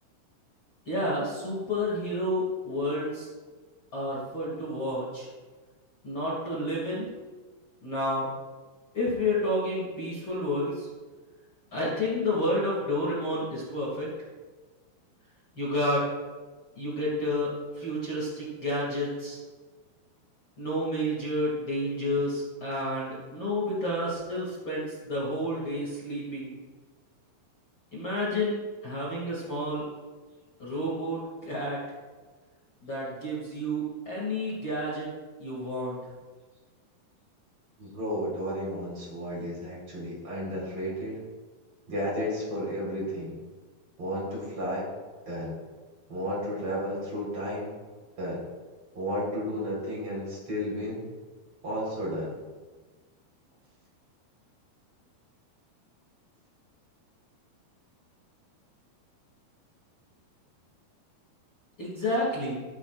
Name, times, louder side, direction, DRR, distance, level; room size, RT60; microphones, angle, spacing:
voice 1, 0.9-3.3 3.9-5.3 6.0-7.1 7.8-8.3 8.9-10.9 11.7-14.1 15.6-16.0 16.8-19.4 20.6-26.5 27.9-29.9 30.6-31.8 32.8-35.1 35.4-36.0 61.8-62.6, left 1 dB, 35° left, -6 dB, 2.8 m, -30 dB
voice 2, 37.8-41.3 41.9-43.4 44.0-44.9 45.3-45.6 46.1-47.7 48.2-48.5 48.9-51.1 51.6-52.3, equal, 35° right, -5 dB, 5.1 m, -33 dB
14.5 x 13.5 x 2.5 m, 1.3 s
omnidirectional pair, 4.5 m